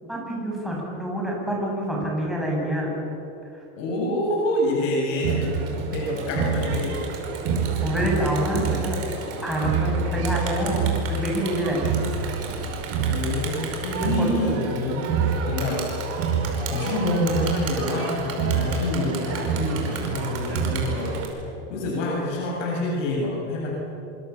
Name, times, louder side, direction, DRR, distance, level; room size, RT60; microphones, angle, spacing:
voice 1, 0.0-2.9 3.5-3.6 7.8-9.0 9.4-11.8 12.2-12.4 14.2-14.3, equal, ahead, -4 dB, 7.5 m, -27 dB
voice 2, 3.8-5.5 5.9-7.0 13.0-15.2 15.4-15.9 16.7-21.2 21.7-23.7, left 1 dB, 80° left, -3 dB, 7.8 m, -27 dB
Crowd, 5.2-21.3, right 5 dB, 40° right, 5.3 m, -27 dB
26.5 x 25.5 x 7.2 m, 3.0 s
supercardioid pair, 150°, 37 cm